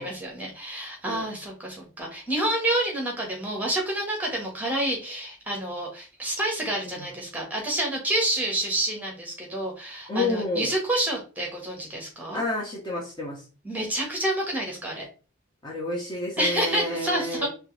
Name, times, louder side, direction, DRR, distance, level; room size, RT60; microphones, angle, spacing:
voice 1, 0.0-12.4 13.6-15.0 16.4-17.5, right 1 dB, 10° right, 0 dB, 1.4 m, -28 dB
voice 2, 10.1-10.7 12.3-13.4 15.6-17.5, left 2 dB, 20° left, -2 dB, 1.0 m, -29 dB
4.5 x 3.4 x 3.3 m, 0.34 s
head